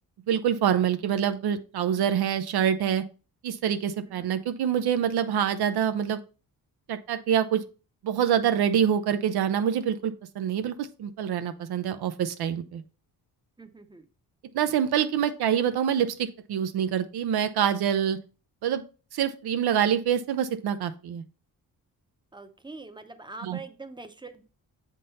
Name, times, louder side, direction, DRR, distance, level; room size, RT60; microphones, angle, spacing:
voice 1, 0.3-3.0 3.4-6.2 6.9-7.6 8.0-12.8 14.5-18.2 18.6-18.8 19.1-21.2 23.4-23.6, right 9 dB, 85° right, 10 dB, 0.6 m, -26 dB
voice 2, 13.6-14.1 22.3-24.5, right 3 dB, 10° right, 9 dB, 0.6 m, -44 dB
7.6 x 3.8 x 4.0 m, 0.35 s
wide cardioid pair, 120°, 38 cm